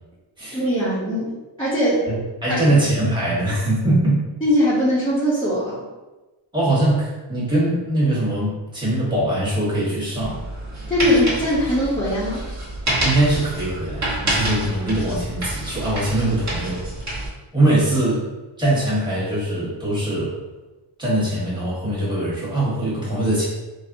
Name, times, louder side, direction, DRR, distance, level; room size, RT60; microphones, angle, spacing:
voice 1, 0.5-1.3 1.6-2.1 2.5-2.8 4.4-5.8 10.9-12.4, equal, 10° left, -12 dB, 0.7 m, -20 dB
voice 2, 2.1-4.2 6.5-10.4 12.9-16.8 17.5-18.2 18.6-20.4 21.0-23.4, right 1 dB, 10° right, -8 dB, 1.1 m, -22 dB
sound 1, 10.2-17.3, right 1 dB, 35° right, 1.0 m, -27 dB
4.1 x 2.0 x 2.5 m, 1.1 s
wide cardioid pair, 145°, 49 cm